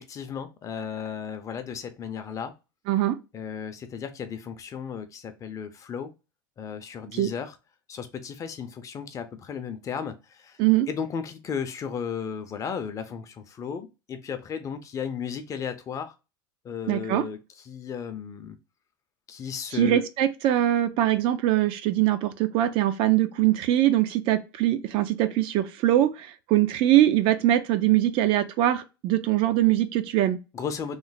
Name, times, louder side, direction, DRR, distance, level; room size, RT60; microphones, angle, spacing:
voice 1, 0.0-2.5 3.3-6.1 6.6-7.6 7.9-10.6 10.9-16.1 16.6-18.6 19.3-20.0 30.5-31.0, left 7 dB, 30° left, 0.6 m, -34 dB
voice 2, 2.9-3.2 7.1-7.3 10.6-10.9 16.9-17.2 19.7-30.4, right 13 dB, 50° right, 0.5 m, -22 dB
3.2 x 2.0 x 3.9 m
supercardioid pair, 115°, 12 cm